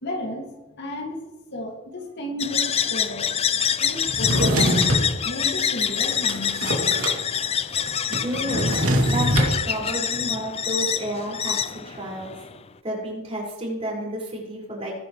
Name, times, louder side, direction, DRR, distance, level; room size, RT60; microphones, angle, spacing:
voice 1, 0.0-1.2 1.5-3.3 3.8-4.8 5.2-7.5, left 1 dB, 55° left, 0 dB, 2.3 m, -33 dB
sound 1, 2.4-12.6, left 8 dB, 30° left, 0.4 m, -26 dB
Drawer open or close, 4.1-5.1 5.7-7.2 7.4-7.5 7.8-9.5, equal, 80° right, 2.7 m, -23 dB
voice 2, 8.2-8.7 9.1-12.3 12.8-14.9, right 1 dB, 30° right, -4 dB, 5.3 m, -31 dB
21.5 x 10.5 x 3.2 m, 1.0 s
head